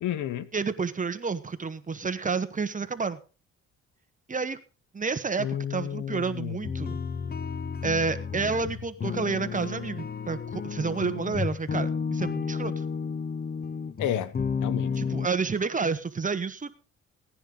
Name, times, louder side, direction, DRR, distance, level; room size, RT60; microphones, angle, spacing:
voice 1, 0.0-0.5 5.4-6.6 14.0-14.3 14.6-14.9, left 10 dB, 80° left, 1.0 m, -31 dB
voice 2, 0.5-3.2 4.3-4.6 4.9-7.0 7.8-12.8 15.0-16.7, right 4 dB, 25° right, 1.2 m, -30 dB
sound 1, 6.6-15.3, left 5 dB, 30° left, 0.7 m, -32 dB
17.0 x 10.0 x 3.9 m
cardioid pair, 90°, 30 cm